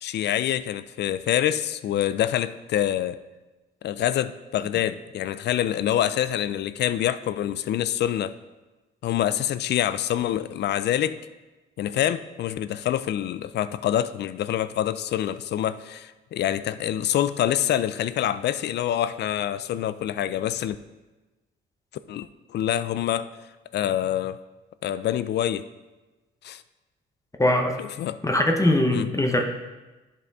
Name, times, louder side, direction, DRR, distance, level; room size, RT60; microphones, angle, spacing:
voice 1, 0.0-3.2 3.8-8.3 9.0-11.2 11.8-20.8 22.1-23.3 23.7-24.4 24.8-25.6 26.4-26.6 27.8-28.2 28.9-29.1, left 11 dB, 60° left, 14 dB, 0.4 m, -26 dB
voice 2, 27.4-27.8 28.2-29.4, left 1 dB, 15° left, 3 dB, 0.8 m, -21 dB
11.0 x 4.1 x 3.5 m, 1.1 s
cardioid pair, 90°, 20 cm